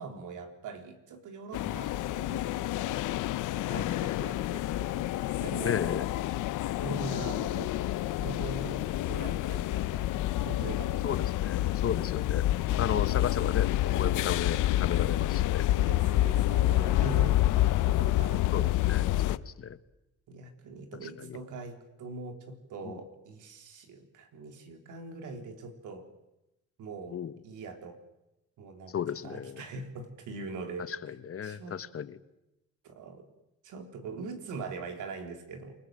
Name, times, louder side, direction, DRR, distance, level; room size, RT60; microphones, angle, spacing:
voice 1, 0.0-3.0 3.5-6.1 6.8-7.7 8.2-11.1 15.7-18.7 20.3-26.0 26.8-27.2 27.4-28.0 28.6-28.9 29.2-30.9 31.4-31.8 32.8-33.2 33.6-35.7, right 4 dB, 80° right, 5 dB, 3.7 m, -42 dB
sound 1, 1.5-19.4, left 15 dB, 85° left, 0.8 m, -28 dB
voice 2, 5.6-6.0 11.0-12.5 12.8-15.7 18.5-19.8 21.0-21.4 22.8-23.0 27.1-27.3 28.9-29.6 30.9-32.2, left 8 dB, 50° left, 14 dB, 1.2 m, -34 dB
28.5 x 19.5 x 7.7 m, 0.93 s
cardioid pair, 90°, 30 cm